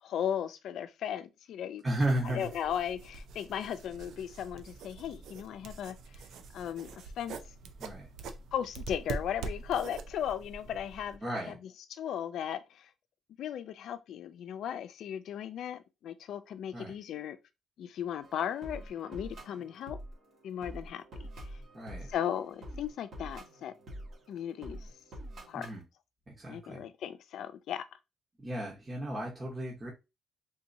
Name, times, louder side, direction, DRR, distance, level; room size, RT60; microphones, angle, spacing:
voice 1, 0.0-1.8 2.2-6.3 6.5-7.4 8.5-11.6 11.9-12.9 13.4-17.4 17.8-20.0 20.4-21.0 21.4-21.5 22.1-23.8 24.3-24.9 25.5-25.7 26.5-27.9, left 9 dB, 75° left, 0.4 m, -36 dB
voice 2, 1.8-2.5 7.8-8.1 11.2-11.6 16.7-16.9 21.7-22.1 25.5-25.8 26.3-26.8 28.4-29.9, right 1 dB, 20° right, 1.1 m, -34 dB
sound 1, 1.9-11.2, right 4 dB, 80° right, 0.5 m, -44 dB
sound 2, 18.2-25.8, equal, 60° right, 1.6 m, -46 dB
3.7 x 2.7 x 2.7 m
cardioid pair, 90°, 0 cm